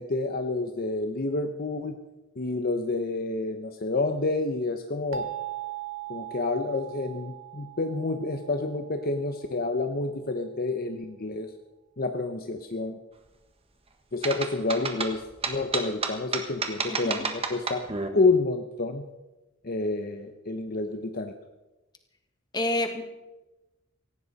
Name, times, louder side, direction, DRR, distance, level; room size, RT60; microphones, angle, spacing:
voice 1, 0.0-2.0 2.4-5.2 6.1-11.5 12.0-13.0 14.1-17.9 18.1-19.0 19.6-21.3, left 3 dB, 50° left, 6 dB, 0.9 m, -29 dB
sound 1, 5.1-9.8, right 10 dB, 85° right, 1.5 m, -39 dB
sound 2, 14.2-18.1, right 4 dB, 30° right, 1.6 m, -30 dB
voice 2, 16.9-17.2 22.5-23.0, left 1 dB, 20° left, 5 dB, 1.8 m, -28 dB
18.0 x 15.5 x 4.2 m, 1.1 s
head